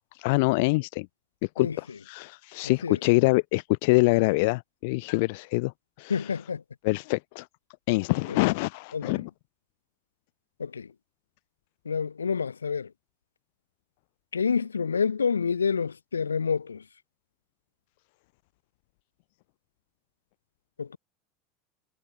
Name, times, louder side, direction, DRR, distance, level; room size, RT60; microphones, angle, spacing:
voice 1, 0.2-1.1 1.6-5.7 6.0-6.3 6.8-7.5 7.9-9.3, left 26 dB, 60° left, 0.9 m, -25 dB
voice 2, 2.6-3.0 6.1-6.6 8.3-8.4 8.9-9.3 10.6-10.9 11.9-12.9 14.3-16.8 20.8-21.0, left 6 dB, 80° left, 1.8 m, -28 dB
figure-of-eight pair, 75°, 0 cm